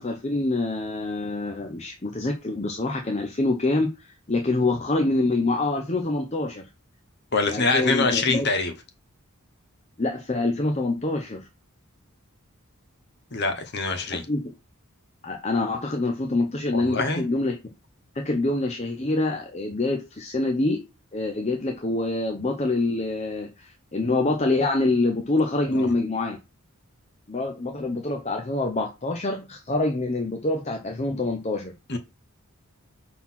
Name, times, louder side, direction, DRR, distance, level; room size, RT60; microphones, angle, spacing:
voice 1, 0.0-6.7 7.5-8.5 10.0-11.5 14.3-14.4 15.2-17.6 18.1-20.8 21.1-26.4 27.3-31.7, left 2 dB, 30° left, 0.7 m, -26 dB
voice 2, 7.3-8.7 13.3-14.3 16.7-17.2 25.7-25.9 31.9-32.0, left 3 dB, 50° left, 1.1 m, -24 dB
5.9 x 4.1 x 5.7 m
head